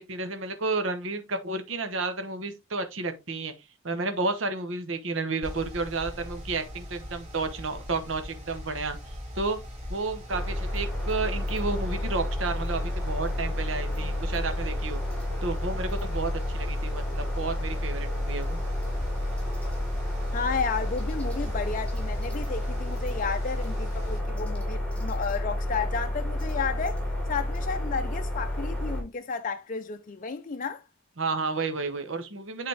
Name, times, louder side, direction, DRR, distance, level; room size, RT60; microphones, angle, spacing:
voice 1, 0.0-3.5 3.8-9.0 9.4-9.6 9.9-15.0 15.4-18.6 31.2-32.7, right 3 dB, 70° right, 1.0 m, -31 dB
Mechanical fan, 5.4-24.2, equal, 35° right, 3.7 m, -42 dB
sound 1, 10.3-29.0, left 1 dB, 5° left, 2.4 m, -30 dB
voice 2, 20.3-27.0 27.3-30.8, left 5 dB, 40° left, 0.5 m, -32 dB
7.9 x 4.0 x 3.3 m
head